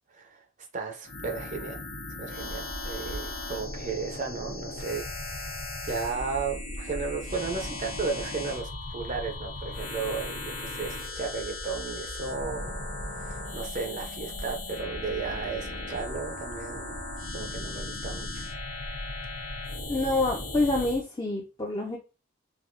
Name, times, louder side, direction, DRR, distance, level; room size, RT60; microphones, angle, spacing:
voice 1, 0.7-1.8 2.2-12.8 13.2-17.0 17.3-18.5, right 4 dB, 35° right, 0.5 m, -34 dB
sound 1, 1.0-21.0, left 2 dB, 90° left, 1.0 m, -37 dB
sound 2, 2.5-19.9, equal, 70° left, 0.7 m, -45 dB
voice 2, 19.9-22.0, left 2 dB, 20° left, 0.4 m, -27 dB
3.4 x 2.7 x 2.5 m
head